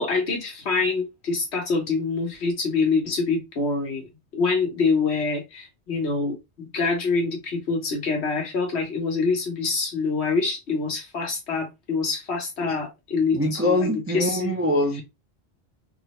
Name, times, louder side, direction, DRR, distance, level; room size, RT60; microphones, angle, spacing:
voice 1, 0.0-14.5, left 4 dB, 85° left, 1.3 m, -25 dB
voice 2, 13.3-15.0, left 1 dB, 25° right, 0.3 m, -23 dB
3.4 x 2.1 x 2.9 m
omnidirectional pair, 1.1 m